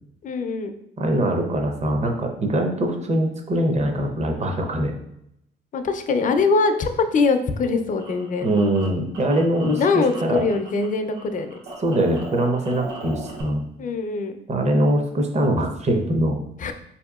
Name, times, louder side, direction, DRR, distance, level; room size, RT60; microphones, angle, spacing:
voice 1, 0.2-0.7 5.7-8.5 9.8-11.5 13.8-14.3 16.6-16.7, left 4 dB, 40° left, 7 dB, 0.4 m, -22 dB
voice 2, 1.0-4.9 8.4-10.4 11.8-13.6 14.5-16.4, right 1 dB, 35° right, 3 dB, 0.7 m, -22 dB
sound 1, 7.5-10.9 11.1-13.4, right 1 dB, 70° right, 1.1 m, -39 dB
4.4 x 2.8 x 2.3 m, 0.78 s
cardioid pair, 90°, 20 cm